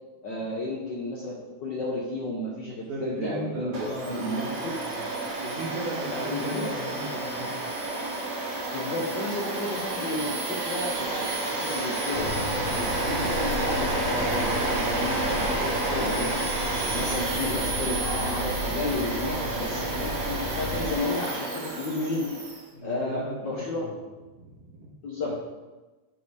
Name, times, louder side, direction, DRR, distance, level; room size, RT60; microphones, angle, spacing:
voice 1, 0.2-4.4 6.1-6.7 8.7-12.3 12.7-16.5 16.9-22.3 22.8-24.0 25.0-25.4, left 2 dB, 85° left, -3 dB, 1.0 m, -32 dB
voice 2, 2.9-5.1 5.4-7.9 22.7-23.9 24.4-24.9 25.2-25.4, right 2 dB, 90° right, -9 dB, 3.3 m, -37 dB
Domestic sounds home sounds, 3.7-22.6, right 2 dB, 55° right, 0.9 m, -30 dB
sound 1, 12.1-21.0, equal, 35° right, 1.4 m, -34 dB
10.5 x 4.4 x 4.8 m, 1.2 s
omnidirectional pair, 3.5 m